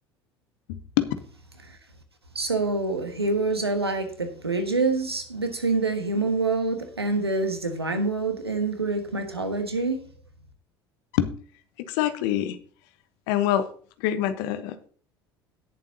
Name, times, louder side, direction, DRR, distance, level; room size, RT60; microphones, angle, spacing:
voice 1, 0.7-1.1 11.1-11.3 11.8-12.6 13.3-13.7 14.0-14.9, left 12 dB, 60° left, 1.1 m, -25 dB
voice 2, 2.3-10.0, right 3 dB, 90° right, 1.5 m, -26 dB
18.0 x 7.3 x 2.8 m
figure-of-eight pair, 65°, 13 cm